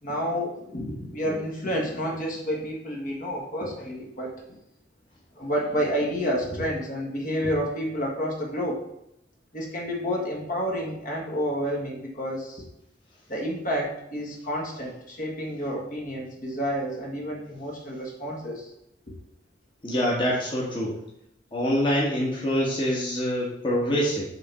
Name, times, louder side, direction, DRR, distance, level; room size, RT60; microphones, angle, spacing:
voice 1, 0.0-4.6 5.3-8.8 9.5-12.6 13.3-18.7, equal, 50° left, -1 dB, 1.7 m, -30 dB
voice 2, 19.8-20.9 21.5-24.2, equal, 30° left, -5 dB, 1.5 m, -25 dB
6.8 x 3.6 x 5.6 m, 0.81 s
head